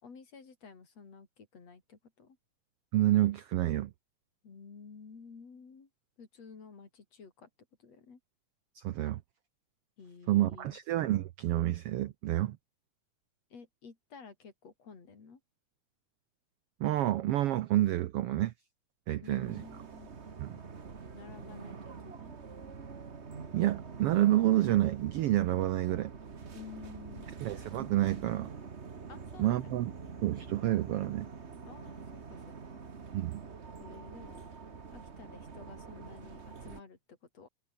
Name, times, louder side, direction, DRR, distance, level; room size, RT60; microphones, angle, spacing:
voice 1, 0.0-2.4 4.4-5.9 6.2-7.5 7.8-8.2 10.0-10.8 13.5-15.4 19.2-20.1 21.1-22.4 26.5-27.3 29.1-29.7 31.6-32.0 32.3-32.8 33.8-34.5 34.9-37.5, left 5 dB, 55° left, 5.0 m, -52 dB
voice 2, 2.9-3.9 8.7-9.2 10.3-12.6 16.8-18.5 19.1-19.6 20.4-20.5 23.5-26.1 27.4-28.5 29.4-29.9 30.2-31.3 33.1-33.4, right 14 dB, 80° right, 1.3 m, -29 dB
sound 1, 19.4-36.8, right 5 dB, 35° right, 1.1 m, -46 dB
omnidirectional pair, 3.6 m